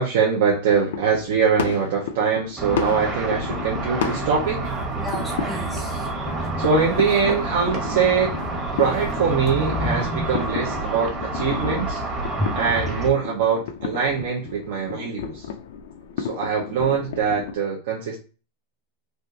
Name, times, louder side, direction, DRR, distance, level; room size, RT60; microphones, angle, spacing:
voice 1, 0.0-4.7 6.6-8.4 8.8-12.0 12.5-15.5 16.2-18.2, right 6 dB, 70° right, 0.7 m, -23 dB
sound 1, 0.7-17.6, left 7 dB, 80° left, 0.4 m, -33 dB
Car / Traffic noise roadway noise / Engine, 2.6-13.1, right 3 dB, 30° right, 1.0 m, -29 dB
sound 2, 4.4-9.7, right 3 dB, 50° right, 1.2 m, -42 dB
voice 2, 5.0-6.7 9.7-10.3 12.4-12.5, equal, 5° right, 0.3 m, -30 dB
3.4 x 2.5 x 2.7 m
supercardioid pair, 130°, 0 cm